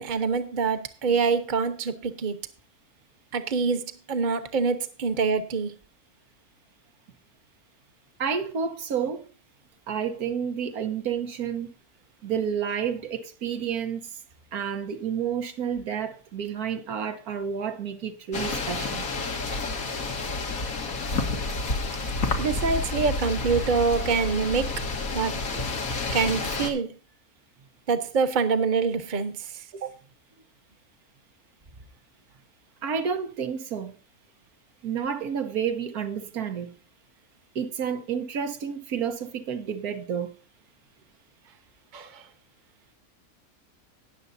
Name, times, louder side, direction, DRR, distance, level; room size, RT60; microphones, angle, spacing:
voice 1, 0.0-2.4 3.3-3.8 4.1-5.7 22.4-24.7 25.1-25.3 26.1-26.9 27.9-29.3 41.9-42.2, right 5 dB, 35° right, 1.0 m, -25 dB
voice 2, 8.2-9.3 9.9-11.7 12.2-14.1 14.5-19.1 29.7-30.0 32.8-33.9 34.8-36.7 37.5-40.3, right 7 dB, 85° right, 1.6 m, -30 dB
sound 1, 18.3-26.7, left 3 dB, 70° left, 1.9 m, -29 dB
19.5 x 6.9 x 2.7 m
omnidirectional pair, 1.5 m